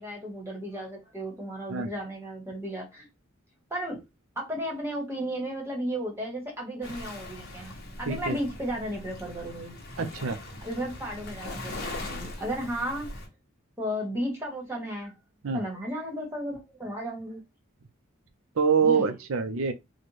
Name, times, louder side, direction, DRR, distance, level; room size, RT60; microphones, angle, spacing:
voice 1, 0.0-3.1 3.7-4.0 4.4-9.7 10.6-13.1 13.8-15.1 15.5-17.4 18.8-19.1, equal, 10° right, 1.2 m, -34 dB
Waves surf, 6.8-13.3, left 2 dB, 50° left, 1.0 m, -40 dB
voice 2, 8.1-8.4 10.0-10.4 15.4-15.6 18.6-19.7, right 5 dB, 75° right, 0.5 m, -25 dB
4.2 x 2.2 x 3.1 m
head